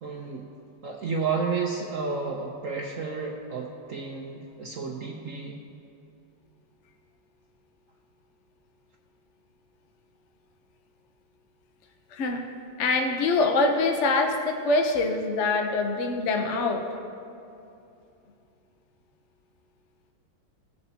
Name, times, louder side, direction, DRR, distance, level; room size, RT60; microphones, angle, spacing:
voice 1, 0.0-0.5 0.8-5.6, right 4 dB, 70° right, 0 dB, 0.7 m, -31 dB
voice 2, 12.1-12.4 12.8-16.8, left 3 dB, 60° left, 4 dB, 0.7 m, -24 dB
18.0 x 7.0 x 2.8 m, 2.7 s
omnidirectional pair, 2.2 m